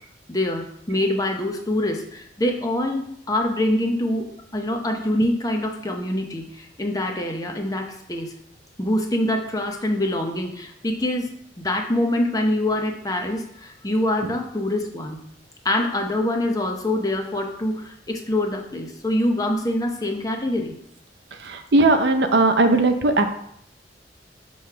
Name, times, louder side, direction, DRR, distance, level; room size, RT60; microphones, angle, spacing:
voice 1, 0.3-8.3 8.8-15.3 15.6-20.7, left 1 dB, 20° left, 3 dB, 0.7 m, -25 dB
voice 2, 21.3-23.2, right 2 dB, 65° right, 7 dB, 0.6 m, -18 dB
5.6 x 3.1 x 5.6 m, 0.70 s
head